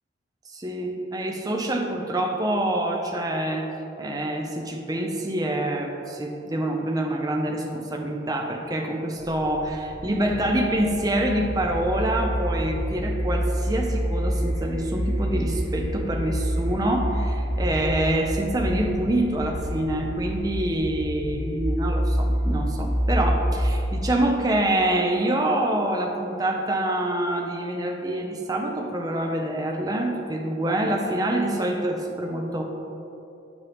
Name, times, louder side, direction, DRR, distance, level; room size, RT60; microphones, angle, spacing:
voice 1, 0.5-3.7 4.0-32.6, right 1 dB, 20° right, 2 dB, 0.6 m, -26 dB
sound 1, 9.2-24.1, equal, 85° left, 1.4 m, -27 dB
8.4 x 5.2 x 3.5 m, 2.9 s
head